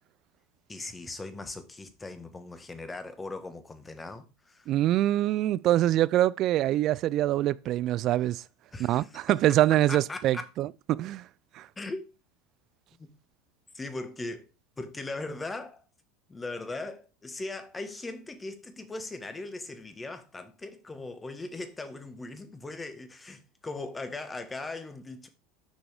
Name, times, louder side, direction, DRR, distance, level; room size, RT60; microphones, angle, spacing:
voice 1, 0.7-4.7 8.7-9.6 9.9-10.4 11.8-12.1 13.0-13.1 13.7-14.5 14.8-15.8 16.3-25.3, left 2 dB, 15° left, 1.4 m, -39 dB
voice 2, 4.7-8.4 8.8-11.3 11.5-11.7, right 14 dB, 50° right, 0.3 m, -25 dB
6.2 x 6.0 x 3.6 m
hypercardioid pair, 80°, 0 cm